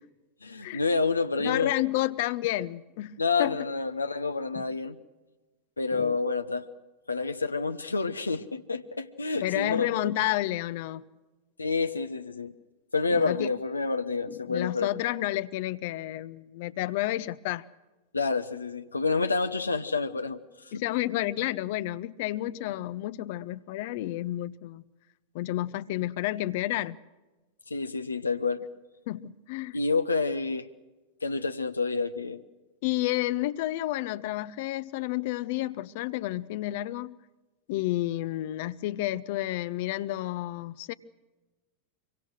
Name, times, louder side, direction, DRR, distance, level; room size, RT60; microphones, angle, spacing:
voice 1, 0.4-1.7 3.2-5.0 5.8-6.7 7.1-10.1 11.6-12.5 12.9-14.9 18.1-20.4 20.6-20.8 27.7-28.6 29.7-30.7 31.2-32.4, left 4 dB, 80° left, 0.9 m, -28 dB
voice 2, 1.4-3.6 4.5-4.7 5.9-6.2 9.4-11.0 13.1-13.5 14.3-17.6 20.7-24.8 25.3-27.0 29.1-29.8 32.8-37.2 37.7-40.9, left 16 dB, 50° left, 0.8 m, -30 dB
25.5 x 23.5 x 6.3 m
figure-of-eight pair, 90°, 0 cm